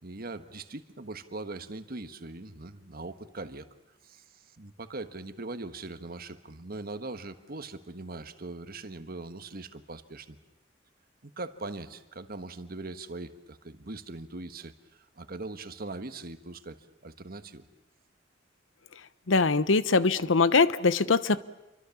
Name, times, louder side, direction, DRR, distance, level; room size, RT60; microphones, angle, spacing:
voice 1, 0.0-3.7 4.0-10.4 11.2-17.7, right 2 dB, 50° right, 9 dB, 1.4 m, -41 dB
voice 2, 19.3-21.4, left 4 dB, 85° left, 16 dB, 0.9 m, -22 dB
28.5 x 24.0 x 7.2 m, 1.0 s
head